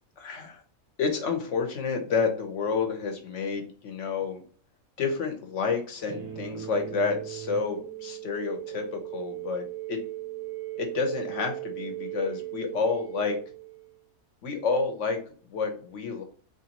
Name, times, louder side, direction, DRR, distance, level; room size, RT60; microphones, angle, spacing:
voice 1, 0.2-0.6 1.0-4.4 5.0-10.0 10.7-13.4 14.4-15.2 15.5-16.2, left 5 dB, 60° left, 5 dB, 1.2 m, -29 dB
sound 1, 6.1-14.0, right 14 dB, 40° right, 0.5 m, -38 dB
4.1 x 3.1 x 2.9 m, 0.42 s
omnidirectional pair, 1.5 m